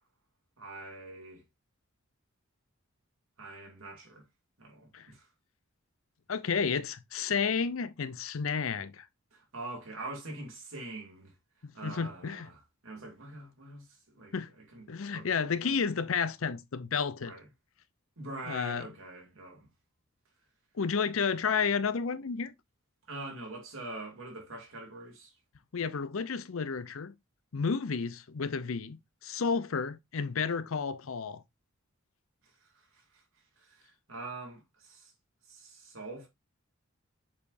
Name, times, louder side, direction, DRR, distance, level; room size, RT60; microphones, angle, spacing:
voice 1, 0.6-1.4 3.4-4.2 4.6-5.2 9.3-11.3 11.7-14.8 15.1-15.7 17.2-17.4 18.2-19.7 23.1-25.3 33.6-35.1 35.5-36.3, right 2 dB, 75° right, 2.9 m, -44 dB
voice 2, 6.3-9.1 11.8-12.5 14.3-14.5 14.9-17.3 18.5-18.9 20.8-22.5 25.7-27.1 27.5-31.4, left 5 dB, 75° left, 0.6 m, -31 dB
7.2 x 5.0 x 2.6 m
head